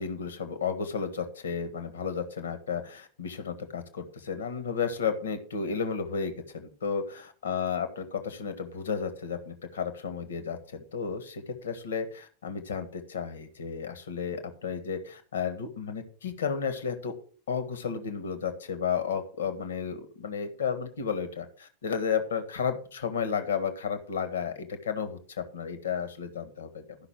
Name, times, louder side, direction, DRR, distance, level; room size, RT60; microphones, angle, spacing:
voice 1, 0.0-17.2 17.5-26.8, left 6 dB, 65° left, 10 dB, 1.6 m, -33 dB
13.0 x 5.9 x 6.1 m, 0.41 s
figure-of-eight pair, 90°, 0 cm